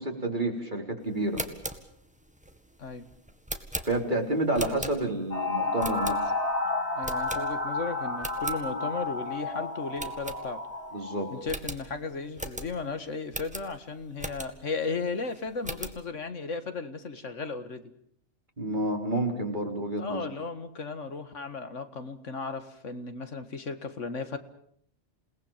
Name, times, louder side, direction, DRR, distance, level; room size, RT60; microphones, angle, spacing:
voice 1, 0.0-1.4 3.8-6.3 10.9-11.3 18.6-20.3, right 2 dB, 35° right, 3 dB, 4.1 m, -29 dB
sound 1, 1.2-5.3 5.8-6.5 7.0-7.8 8.1-8.6 9.1-9.2 9.4-9.5 10.0-10.9 11.1-11.2 11.5-14.8 15.2-16.0, right 1 dB, 5° right, 1.8 m, -39 dB
sound 2, 5.3-11.4, left 3 dB, 30° left, 3.2 m, -31 dB
voice 2, 6.7-10.6 11.3-17.8 20.0-24.4, left 4 dB, 70° left, 10 dB, 2.1 m, -35 dB
28.5 x 19.0 x 7.3 m, 0.65 s
omnidirectional pair, 1.3 m